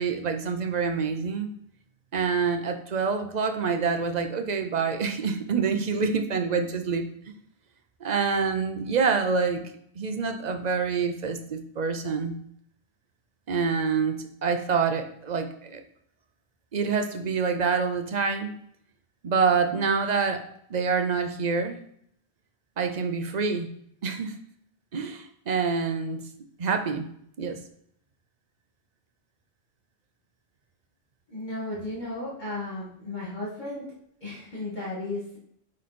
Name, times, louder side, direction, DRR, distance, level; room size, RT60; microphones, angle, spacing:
voice 1, 0.0-1.5 2.1-7.1 8.0-9.6 10.0-12.3 13.5-15.8 16.7-18.5 19.2-20.4 20.7-21.8 22.8-23.7 24.0-24.4 24.9-26.2 26.6-27.1 27.4-27.6, right 5 dB, 45° right, 7 dB, 0.8 m, -26 dB
voice 2, 31.3-33.9 34.2-35.4, left 2 dB, 45° left, -7 dB, 2.1 m, -34 dB
9.2 x 3.2 x 4.3 m, 0.69 s
omnidirectional pair, 1.0 m